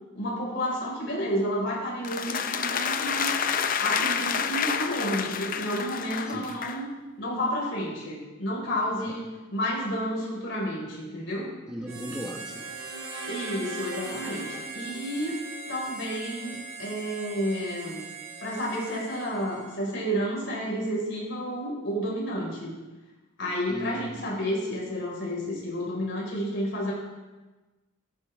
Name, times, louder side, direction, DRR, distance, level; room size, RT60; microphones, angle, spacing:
voice 1, 0.1-3.3 3.8-6.9 7.2-11.5 13.3-15.4 15.7-18.0 18.4-22.7 23.4-26.9, equal, 60° left, -3 dB, 4.8 m, -31 dB
sound 1, 2.0-6.9, left 7 dB, 40° left, 0.6 m, -29 dB
voice 2, 11.7-12.7 23.7-24.3, equal, 5° right, -1 dB, 1.1 m, -37 dB
Harmonica, 11.8-19.9, right 4 dB, 75° right, 5.7 m, -41 dB
sound 2, 12.3-15.7, right 2 dB, 55° right, 2.9 m, -41 dB
15.0 x 14.5 x 3.6 m, 1.2 s
head